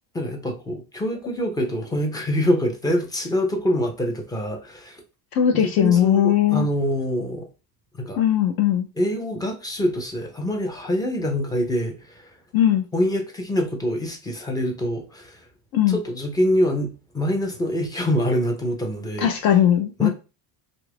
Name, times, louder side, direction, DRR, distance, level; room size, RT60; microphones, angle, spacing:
voice 1, 0.1-5.0 5.5-7.5 8.0-8.2 9.0-12.3 12.9-15.4 15.9-19.3 20.0-20.1, equal, 10° left, 0.4 m, -25 dB
voice 2, 5.3-6.7 8.2-8.9 12.5-12.9 15.7-16.0 19.2-20.1, left 10 dB, 60° left, 0.6 m, -19 dB
3.0 x 2.4 x 3.2 m
cardioid pair, 150°, 41 cm